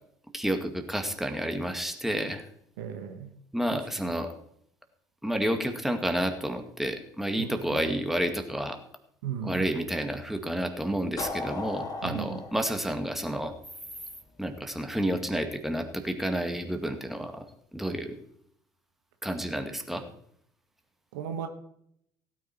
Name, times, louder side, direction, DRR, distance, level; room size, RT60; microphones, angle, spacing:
voice 1, 0.3-2.4 3.5-4.3 5.2-8.8 9.4-13.5 14.4-17.4 17.7-18.2 19.2-20.1, right 1 dB, 5° right, 6 dB, 2.0 m, -30 dB
voice 2, 2.8-3.3 3.7-3.8 7.4-7.8 9.2-9.6 12.0-12.4 21.1-21.5, right 8 dB, 75° right, 7 dB, 1.3 m, -35 dB
sound 1, 11.2-14.0, left 3 dB, 40° left, 2.7 m, -37 dB
16.5 x 9.4 x 4.5 m, 0.70 s
hypercardioid pair, 60°, 10 cm